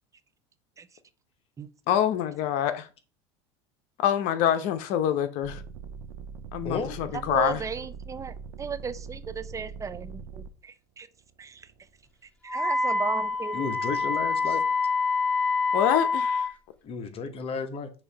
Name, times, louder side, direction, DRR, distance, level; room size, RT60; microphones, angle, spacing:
voice 1, 1.9-2.9 4.0-5.6 6.5-7.6 14.4-14.6 15.7-16.5, left 10 dB, 65° left, 0.9 m, -26 dB
sound 1, 5.4-10.5 11.2-11.9, right 6 dB, 75° right, 0.7 m, -42 dB
voice 2, 6.6-7.0 13.5-14.6 16.8-17.9, left 5 dB, 40° left, 1.2 m, -32 dB
voice 3, 7.3-11.1 11.4-11.6 12.5-13.7, right 5 dB, 20° right, 0.6 m, -35 dB
Wind instrument woodwind instrument, 12.5-16.5, left 4 dB, 10° left, 0.9 m, -26 dB
6.5 x 2.8 x 5.2 m
supercardioid pair, 100°, 14 cm